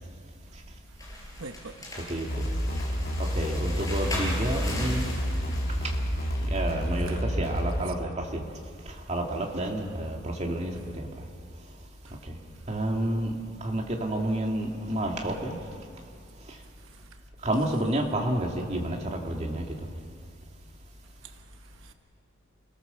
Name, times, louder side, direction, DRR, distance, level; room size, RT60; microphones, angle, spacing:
sound 1, 1.0-6.5, left 1 dB, 20° left, 5.1 m, -39 dB
voice 1, 1.2-2.0 7.1-7.2 7.8-7.9 10.0-10.1 12.1-12.2 16.9-17.1 21.2-21.9, right 4 dB, 90° right, 1.0 m, -46 dB
voice 2, 2.1-2.5 3.2-5.1 6.4-8.5 8.8-11.3 12.2-12.4 12.7-15.6 16.5-16.6 17.4-19.8, right 1 dB, 35° right, 2.5 m, -30 dB
sound 2, 2.3-7.8, equal, 50° left, 2.7 m, -29 dB
29.5 x 18.0 x 7.0 m
head